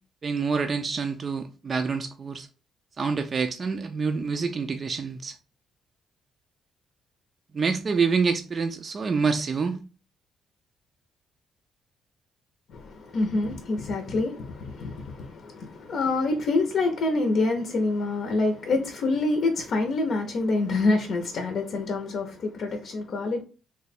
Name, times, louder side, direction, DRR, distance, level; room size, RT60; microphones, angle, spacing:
voice 1, 0.2-2.5 3.0-5.4 7.5-9.8, right 5 dB, 40° right, 0.4 m, -27 dB
voice 2, 12.7-23.4, left 3 dB, 65° left, 0.6 m, -26 dB
3.2 x 2.2 x 4.1 m
cardioid pair, 90°, 0 cm